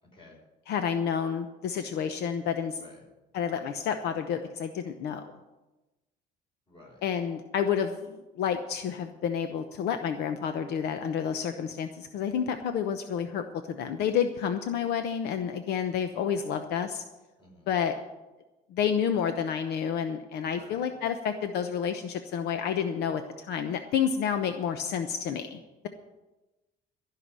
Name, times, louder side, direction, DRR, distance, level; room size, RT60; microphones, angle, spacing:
voice 1, 0.0-0.4 2.8-3.1 6.7-7.0 17.4-17.7 20.4-21.0 24.6-25.0, left 2 dB, 30° left, -1 dB, 5.5 m, -53 dB
voice 2, 0.7-2.8 3.3-5.3 7.0-17.0 17.7-18.0 18.7-25.9, left 8 dB, 75° left, 8 dB, 0.9 m, -30 dB
14.0 x 5.9 x 9.7 m, 1.1 s
cardioid pair, 110°, 17 cm